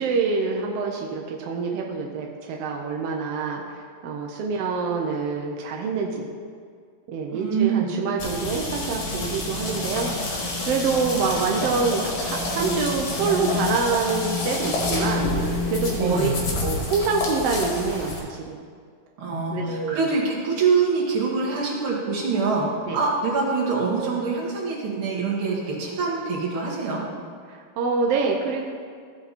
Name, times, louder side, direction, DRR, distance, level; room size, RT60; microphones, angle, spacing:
voice 1, 0.0-3.6 4.0-6.3 7.1-16.3 16.6-18.6 19.5-20.1 22.9-23.0 27.5-28.7, right 4 dB, 80° right, 0 dB, 1.4 m, -26 dB
voice 2, 7.3-7.9 15.9-16.3 19.2-22.7 22.9-27.0, right 4 dB, 45° right, -5 dB, 2.5 m, -24 dB
sound 1, 8.2-18.2, left 2 dB, 60° left, 2.8 m, -28 dB
15.0 x 5.8 x 4.1 m, 2.1 s
omnidirectional pair, 3.6 m